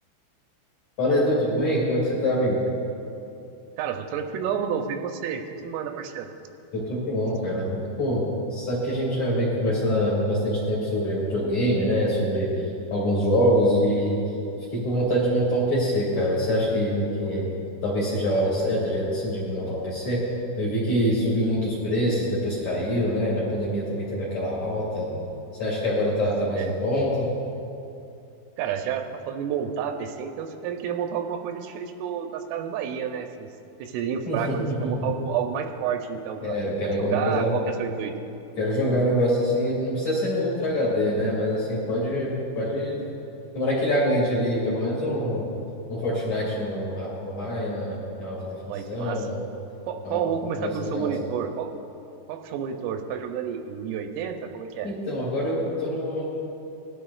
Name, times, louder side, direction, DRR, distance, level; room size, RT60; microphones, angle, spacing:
voice 1, 1.0-2.6 6.7-12.6 12.9-14.2 14.7-17.5 17.8-20.2 20.6-25.2 25.6-27.3 34.3-35.1 36.4-37.5 38.6-43.0 43.5-45.5 45.9-48.5 48.9-49.4 50.0-50.2 50.6-51.1 54.8-56.3, equal, 45° left, -7 dB, 2.6 m, -25 dB
voice 2, 3.8-6.3 26.6-26.8 28.6-33.5 33.8-36.6 36.8-38.1 48.7-49.3 49.9-51.7 52.3-54.9, right 8 dB, 85° right, 5 dB, 3.1 m, -30 dB
19.5 x 12.5 x 2.3 m, 2.7 s
omnidirectional pair, 6.0 m